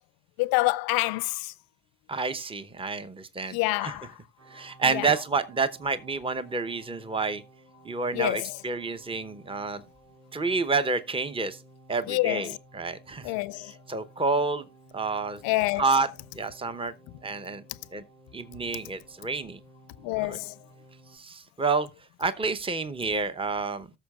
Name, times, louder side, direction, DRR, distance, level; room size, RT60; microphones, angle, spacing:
voice 1, 0.4-1.5 3.5-4.1 4.9-5.1 8.1-8.5 12.1-12.6 13.2-13.7 15.4-15.8 20.0-20.5, left 21 dB, 65° left, 0.5 m, -27 dB
voice 2, 2.1-4.0 4.5-7.4 7.8-9.8 10.3-11.6 11.9-13.3 13.6-14.7 14.9-15.4 15.8-16.1 16.3-16.9 17.2-17.6 17.9-18.0 18.3-19.6 20.2-20.4 21.1-21.9 22.2-23.9, right 4 dB, 15° right, 0.9 m, -29 dB
sound 1, 4.4-21.2, right 1 dB, 40° right, 3.9 m, -55 dB
18.5 x 6.6 x 2.4 m
hypercardioid pair, 50°, 38 cm